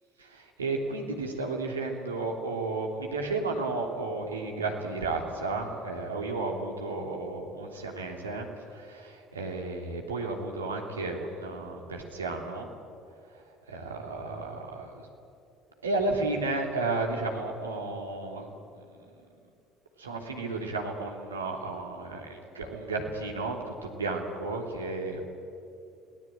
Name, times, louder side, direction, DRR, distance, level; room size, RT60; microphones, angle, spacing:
voice 1, 0.3-8.5 8.7-12.7 13.7-15.0 15.8-18.5 20.0-25.2, right 3 dB, 85° right, 1 dB, 3.1 m, -33 dB
28.5 x 19.0 x 9.0 m, 2.6 s
figure-of-eight pair, 55°, 0 cm